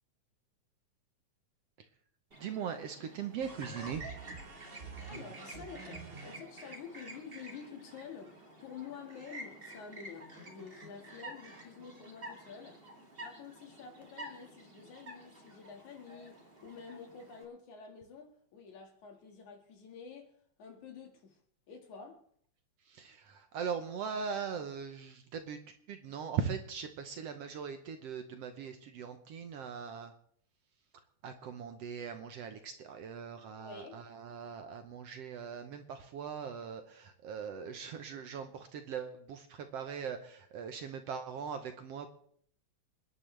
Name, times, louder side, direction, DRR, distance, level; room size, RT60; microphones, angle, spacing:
Chirp tweet, 2.3-17.4, right 1 dB, 20° right, 2.1 m, -50 dB
voice 1, 2.4-4.0 22.9-25.6 25.9-30.1 31.2-42.1, right 7 dB, 65° right, 1.8 m, -40 dB
sound 1, 3.4-6.8, right 4 dB, 85° right, 0.5 m, -48 dB
voice 2, 5.1-12.8 13.2-20.3 20.6-21.4 21.7-22.2 33.6-34.0, left 6 dB, 70° left, 3.4 m, -49 dB
27.5 x 10.5 x 3.3 m
omnidirectional pair, 3.5 m